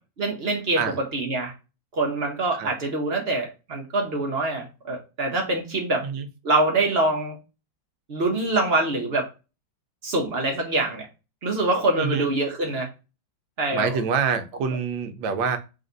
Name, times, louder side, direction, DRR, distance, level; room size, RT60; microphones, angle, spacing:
voice 1, 0.2-1.5 1.9-6.1 6.4-7.4 8.1-9.3 10.0-11.1 11.4-12.9 13.6-14.0, right 2 dB, 50° right, 1 dB, 0.7 m, -25 dB
voice 2, 12.0-12.3 13.7-15.6, right 6 dB, 85° right, 8 dB, 1.5 m, -26 dB
3.9 x 2.5 x 3.8 m, 0.29 s
omnidirectional pair, 2.0 m